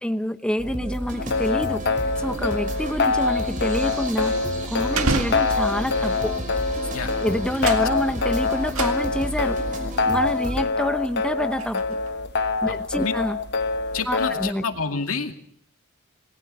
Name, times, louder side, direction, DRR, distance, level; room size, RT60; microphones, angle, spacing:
voice 1, 0.0-1.8 2.2-4.4 4.7-6.4 7.2-9.6 10.1-12.0 12.6-13.4 14.1-14.6, equal, 5° left, 9 dB, 0.8 m, -27 dB
sound 1, 0.6-10.6, equal, 40° right, 5.7 m, -32 dB
sound 2, 1.2-14.5, left 4 dB, 55° left, 1.1 m, -25 dB
sound 3, 4.9-6.0 6.7-7.1 7.4-9.5 10.0-10.1 10.7-12.2, right 3 dB, 90° right, 2.1 m, -31 dB
voice 2, 12.7-13.1 13.9-15.3, left 4 dB, 90° left, 5 dB, 2.3 m, -29 dB
27.5 x 20.0 x 5.5 m, 0.64 s
head